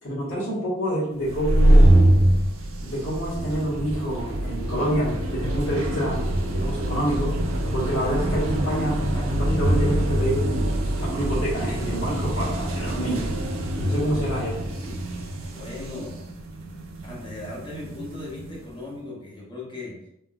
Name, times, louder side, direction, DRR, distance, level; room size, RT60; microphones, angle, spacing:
voice 1, 0.0-2.1 2.8-6.3 6.5-7.4 7.7-10.7 11.0-13.3 13.7-14.6, equal, 65° left, -7 dB, 1.4 m, -27 dB
sound 1, 1.2-18.6, right 1 dB, 75° right, 0.5 m, -24 dB
voice 2, 12.2-12.8 14.8-14.9 15.5-16.3 17.0-20.1, left 2 dB, 25° left, -4 dB, 0.8 m, -38 dB
3.4 x 2.2 x 2.4 m, 0.80 s
head